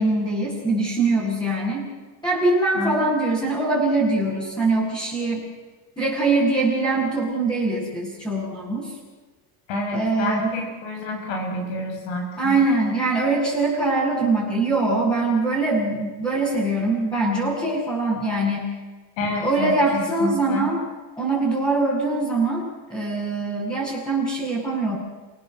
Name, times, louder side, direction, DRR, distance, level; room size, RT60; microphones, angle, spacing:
voice 1, 0.0-1.9 2.2-5.4 6.0-9.0 9.9-10.5 12.4-18.7 19.4-20.8 21.2-22.6 22.9-25.0, right 2 dB, 10° left, -8 dB, 7.9 m, -23 dB
voice 2, 2.7-3.1 9.7-12.6 19.2-19.7 20.2-20.7, left 1 dB, 70° left, 2 dB, 7.9 m, -28 dB
30.0 x 18.0 x 8.0 m, 1.3 s
cardioid pair, 140°, 48 cm